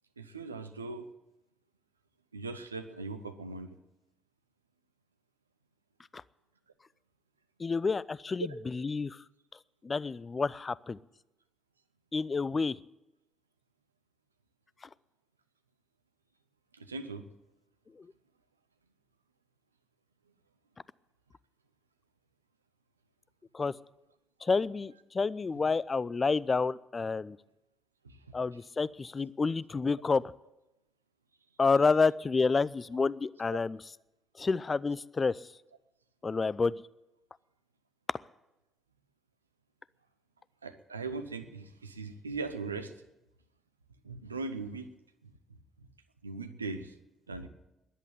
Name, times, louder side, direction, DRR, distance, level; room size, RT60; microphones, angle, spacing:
voice 1, 0.2-1.1 2.3-3.8 8.4-8.5 16.7-17.2 28.0-28.2 33.5-33.6 40.6-42.9 44.0-44.9 45.2-45.3 46.2-46.9 47.3-47.5, right 3 dB, 90° right, 9 dB, 0.7 m, -39 dB
voice 2, 7.6-9.2 9.8-11.0 12.1-12.7 23.5-23.7 24.4-27.4 28.3-30.2 31.6-33.8 34.4-35.4 36.2-36.7, left 4 dB, 35° left, 21 dB, 0.5 m, -29 dB
14.0 x 11.0 x 8.7 m, 0.93 s
figure-of-eight pair, 45°, 0 cm